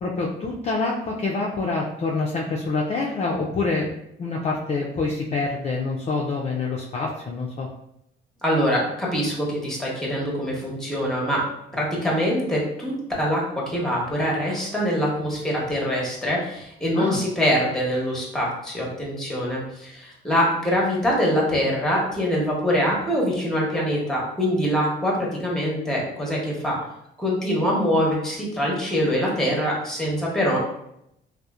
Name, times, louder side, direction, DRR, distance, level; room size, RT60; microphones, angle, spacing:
voice 1, 0.0-3.9 4.2-7.7 16.9-17.2, left 3 dB, 35° left, -2 dB, 0.4 m, -26 dB
voice 2, 8.4-11.4 11.7-12.9 13.2-26.8 27.2-30.6, equal, 5° left, -3 dB, 0.9 m, -24 dB
2.7 x 2.0 x 2.3 m, 0.80 s
cardioid pair, 90°, 20 cm